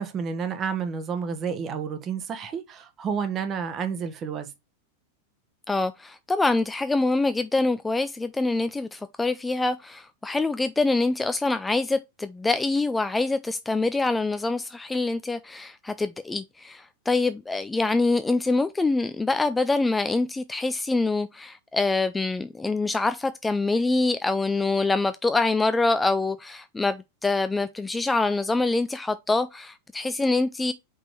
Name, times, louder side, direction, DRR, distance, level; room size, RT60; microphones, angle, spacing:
voice 1, 0.0-4.5, right 6 dB, 30° right, 1.2 m, -30 dB
voice 2, 5.7-30.7, left 3 dB, 10° left, 0.4 m, -25 dB
5.1 x 4.4 x 4.6 m
figure-of-eight pair, 90°, 0 cm